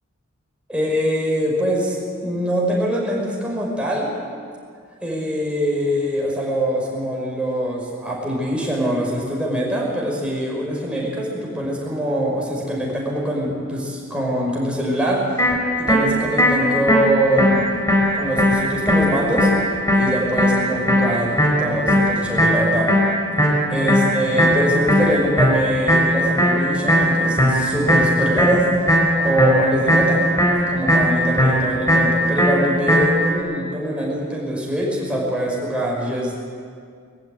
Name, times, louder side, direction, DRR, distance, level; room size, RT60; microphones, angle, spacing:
voice 1, 0.7-2.0 2.2-4.1 5.0-15.3 15.8-17.7 18.1-19.5 20.0-22.9 23.7-28.6 29.2-30.2 30.7-36.3, equal, 5° right, -3 dB, 5.6 m, -23 dB
sound 1, 15.4-33.4, equal, 15° left, 5.6 m, -19 dB
22.5 x 14.5 x 9.2 m, 2.2 s
head